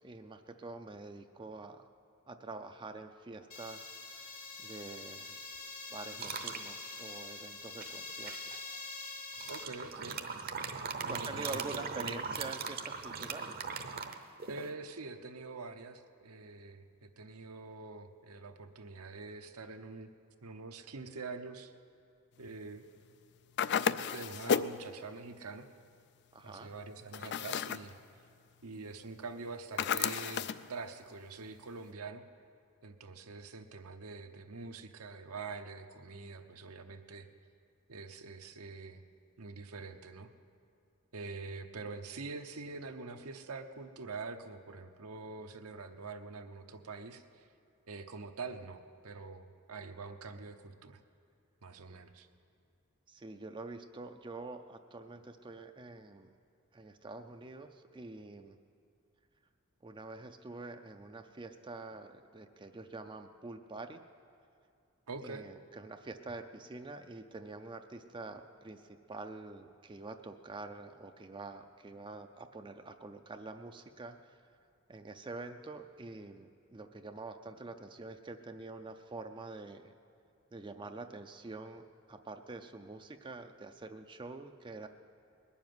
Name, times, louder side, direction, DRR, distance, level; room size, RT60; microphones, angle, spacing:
voice 1, 0.0-1.9 2.3-3.9 4.2-4.3 4.6-5.4 5.9-8.5 10.4-10.7 11.1-13.6 26.3-26.7 53.1-56.3 56.7-58.6 59.8-64.0 65.2-74.4 74.9-79.9 80.5-84.9, right 3 dB, 20° right, 7 dB, 0.4 m, -46 dB
sound 1, 3.5-9.6, left 3 dB, 90° left, 2.5 m, -45 dB
sound 2, 6.2-6.6 7.8-8.6 9.3-14.7, right 5 dB, 45° right, 0.8 m, -40 dB
voice 2, 9.5-10.2 11.0-12.3 14.5-20.1 20.4-21.7 22.4-22.8 24.1-25.7 26.4-27.9 28.6-32.2 32.8-37.3 37.9-39.0 39.4-40.3 41.1-47.5 47.9-51.0 51.6-52.3 65.1-65.5, right 3 dB, 75° right, 7 dB, 0.9 m, -45 dB
sound 3, 23.6-24.8 27.1-27.9 29.8-30.7, left 7 dB, 50° left, 0.3 m, -32 dB
20.5 x 7.2 x 9.4 m, 2.4 s
head